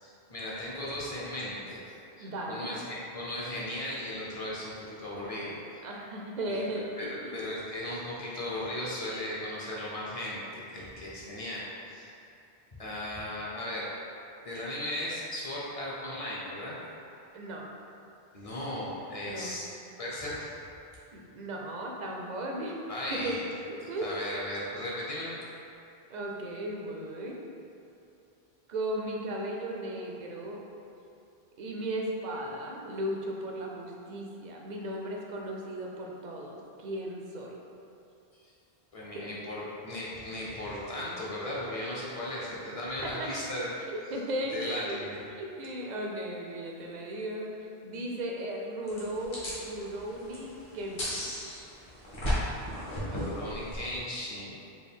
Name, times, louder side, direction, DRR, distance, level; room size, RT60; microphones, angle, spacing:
voice 1, 0.0-5.8 6.5-6.6 7.0-7.1 7.3-12.1 12.8-13.9 14.4-16.7 18.3-19.7 20.0-20.5 22.9-23.4 24.0-25.3 38.9-43.7 44.5-45.2 53.1-54.6, left 1 dB, 40° left, -6 dB, 0.7 m, -36 dB
voice 2, 2.2-2.8 5.8-7.4 17.3-17.7 19.2-19.7 21.1-22.8 23.1-23.4 23.7-24.2 26.1-27.4 28.7-30.6 31.6-37.6 39.1-39.4 43.0-43.3 43.9-45.0 45.3-51.3, right 1 dB, 55° right, -1 dB, 0.6 m, -36 dB
sound 1, 48.9-54.0, equal, 60° left, 1.3 m, -35 dB
4.5 x 2.4 x 3.5 m, 2.8 s
omnidirectional pair, 1.1 m